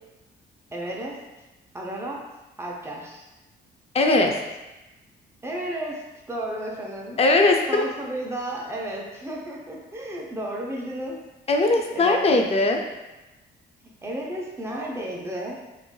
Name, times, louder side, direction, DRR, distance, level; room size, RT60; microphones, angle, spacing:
voice 1, 0.7-1.2 1.7-2.2 2.6-3.3 5.4-7.2 7.7-11.2 11.7-12.4 14.0-15.6, right 1 dB, 15° right, -2 dB, 0.6 m, -33 dB
voice 2, 3.9-4.3 7.2-7.8 11.5-12.8, left 2 dB, 30° left, 3 dB, 0.4 m, -19 dB
3.0 x 2.5 x 2.2 m, 1.0 s
cardioid pair, 90°, 20 cm